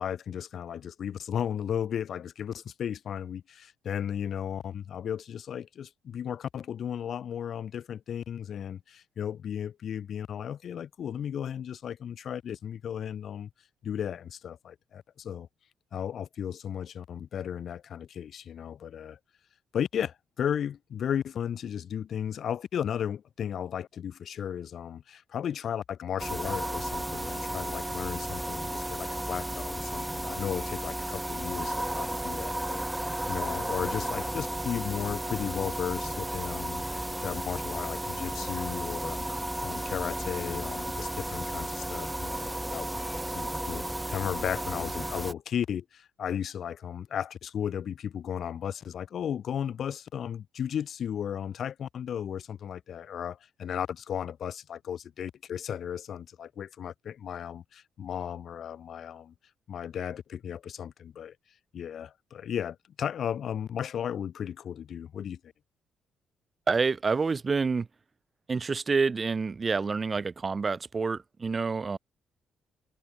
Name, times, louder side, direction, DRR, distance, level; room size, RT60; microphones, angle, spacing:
voice 1, 0.0-13.5 13.8-15.5 15.9-19.2 19.7-59.3 59.7-61.4 61.7-65.4, left 9 dB, 60° left, 3.6 m, -35 dB
sound 1, 26.2-45.3, right 1 dB, 5° right, 1.6 m, -33 dB
voice 2, 66.7-67.9 68.5-72.0, right 4 dB, 35° right, 0.8 m, -28 dB
cardioid pair, 90°, 0 cm